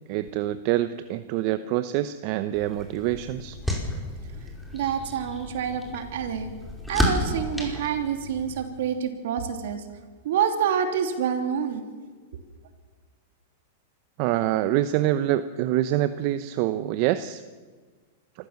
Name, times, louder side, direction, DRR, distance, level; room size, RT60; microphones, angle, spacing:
voice 1, 0.1-3.6 14.2-17.4, right 13 dB, 50° right, 12 dB, 0.9 m, -25 dB
sound 1, 2.5-8.7, left 1 dB, ahead, 5.1 m, -32 dB
voice 2, 4.7-6.5 6.9-9.8 10.2-11.8, right 8 dB, 70° right, 6 dB, 3.0 m, -27 dB
25.5 x 14.5 x 7.4 m, 1.4 s
hypercardioid pair, 115°, 0 cm